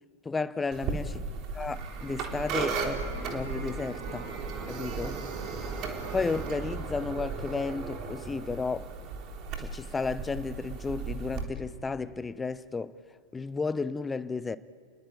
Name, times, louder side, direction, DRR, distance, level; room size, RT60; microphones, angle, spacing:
voice 1, 0.2-1.2 1.6-4.3 4.7-5.2 6.1-8.9 9.6-12.9 13.3-14.6, left 4 dB, 15° left, 0.8 m, -33 dB
sound 1, 0.7-11.4, right 4 dB, 35° right, 3.5 m, -35 dB
30.0 x 21.0 x 8.9 m
figure-of-eight pair, 90°, 0 cm